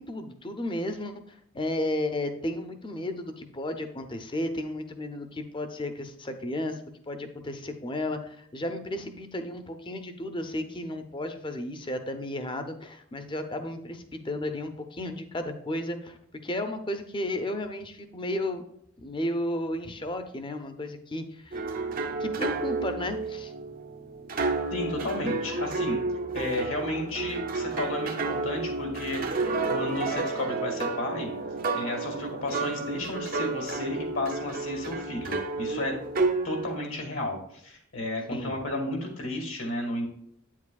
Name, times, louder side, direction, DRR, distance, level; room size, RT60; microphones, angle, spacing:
voice 1, 0.0-16.2 16.4-18.6 19.0-21.6 22.2-23.5 38.3-38.5, left 1 dB, 20° left, 8 dB, 0.6 m, -33 dB
sound 1, 21.5-36.8, right 3 dB, 40° right, 0.6 m, -31 dB
voice 2, 24.7-26.0 26.3-31.3 31.7-35.9 36.4-40.1, left 1 dB, 70° left, 1 dB, 2.1 m, -33 dB
8.8 x 7.3 x 2.3 m, 0.72 s
head